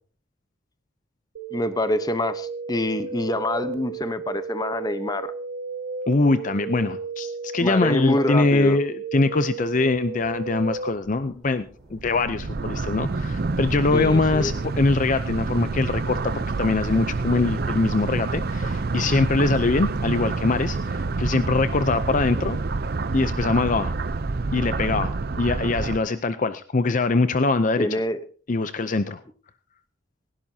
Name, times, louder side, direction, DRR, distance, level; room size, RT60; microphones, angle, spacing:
sound 1, 1.4-10.9, right 4 dB, 90° right, 1.5 m, -33 dB
voice 1, 1.5-5.3 7.6-8.8 13.9-14.5 27.8-28.2, left 1 dB, 20° left, 12 dB, 0.9 m, -26 dB
voice 2, 6.1-11.7 11.9-22.6 23.1-23.9 24.5-25.1 25.4-28.0 28.5-29.2, left 3 dB, 40° left, 12 dB, 0.6 m, -23 dB
sound 2, 9.7-19.0, equal, ahead, 4.5 m, -51 dB
sound 3, 11.9-26.0, right 3 dB, 50° right, 0.6 m, -28 dB
18.5 x 16.5 x 2.8 m, 0.41 s
head